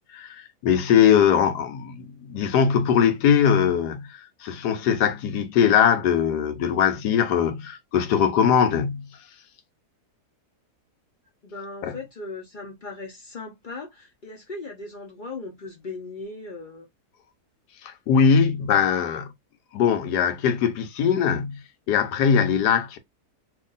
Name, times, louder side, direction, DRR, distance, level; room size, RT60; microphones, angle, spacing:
voice 1, 0.1-9.1 11.8-11.9 17.8-19.3 19.7-21.6 21.9-23.0, left 7 dB, 80° left, 1.3 m, -21 dB
voice 2, 11.4-16.9, left 3 dB, 50° left, 0.6 m, -38 dB
2.9 x 2.5 x 3.8 m
omnidirectional pair, 1.7 m